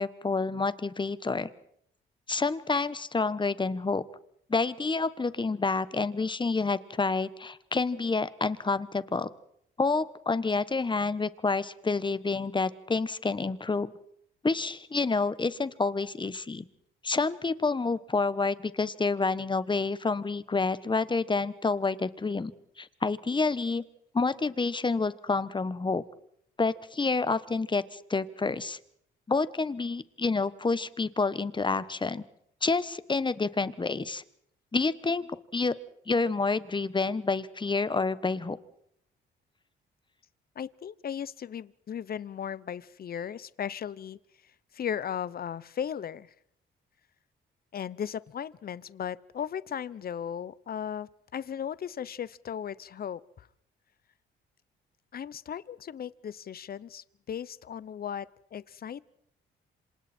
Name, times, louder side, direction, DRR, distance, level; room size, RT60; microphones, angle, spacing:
voice 1, 0.0-1.5 2.3-4.0 4.5-9.3 9.8-13.9 14.4-16.7 17.0-22.5 22.8-23.8 24.1-26.0 26.6-28.8 29.3-32.2 32.6-34.2 34.7-35.2 35.5-35.7 36.1-38.6, left 4 dB, 25° left, 15 dB, 1.3 m, -28 dB
voice 2, 40.6-44.2 44.7-46.3 47.7-53.5 55.1-59.0, left 8 dB, 50° left, 19 dB, 0.8 m, -36 dB
27.0 x 26.5 x 4.5 m, 0.73 s
cardioid pair, 85°, 20 cm